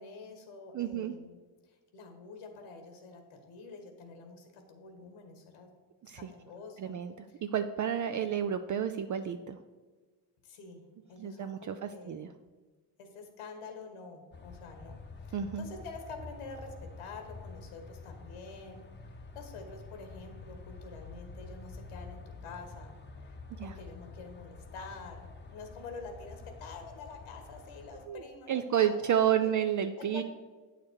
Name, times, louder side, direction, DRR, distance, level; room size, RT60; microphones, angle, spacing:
voice 1, 0.0-1.4 1.6-5.7 6.2-6.9 7.3-7.4 10.4-10.8 11.1-12.1 13.0-22.9 23.2-29.1 30.0-30.2, left 4 dB, 90° left, 5 dB, 1.9 m, -47 dB
voice 2, 0.7-1.1 6.0-6.3 6.8-9.6 11.2-12.3 15.3-15.7 23.5-23.7 28.1-28.2 28.5-30.2, right 9 dB, 40° right, 9 dB, 0.4 m, -31 dB
sound 1, 14.3-28.1, left 3 dB, 20° left, 0.8 m, -48 dB
8.5 x 6.6 x 4.7 m, 1.3 s
cardioid pair, 115°, 50 cm